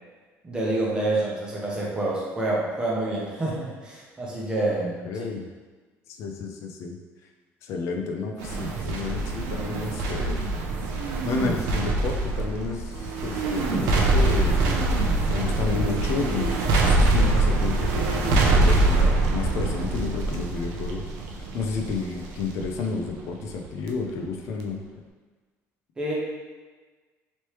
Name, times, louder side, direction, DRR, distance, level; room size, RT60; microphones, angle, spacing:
voice 1, 0.4-5.0 26.0-26.1, right 2 dB, 15° right, -5 dB, 0.8 m, -27 dB
voice 2, 5.0-5.5 6.2-7.0 7.6-10.4 11.2-14.8 15.3-24.8, left 4 dB, 60° left, 3 dB, 0.5 m, -31 dB
sound 1, 8.4-23.9 24.2-24.3, right 2 dB, 85° right, 0.5 m, -24 dB
3.2 x 3.0 x 3.0 m, 1.4 s
cardioid pair, 150°, 6 cm